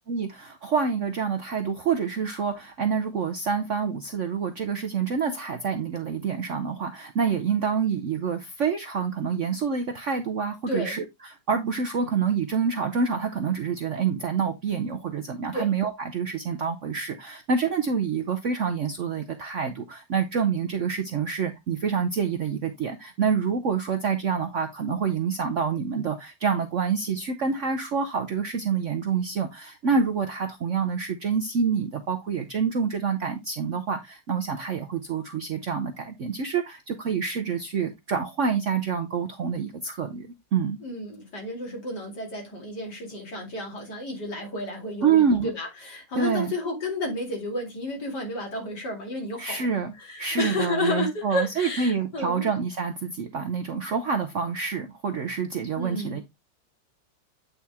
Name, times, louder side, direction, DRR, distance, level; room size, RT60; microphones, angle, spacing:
voice 1, 0.1-40.8 45.0-45.5 46.2-46.5 49.4-56.2, right 6 dB, 60° right, 0.8 m, -27 dB
voice 2, 10.7-11.0 15.5-15.7 40.8-52.5 55.7-56.2, left 1 dB, 60° left, 3.1 m, -31 dB
8.6 x 4.3 x 3.5 m
omnidirectional pair, 2.0 m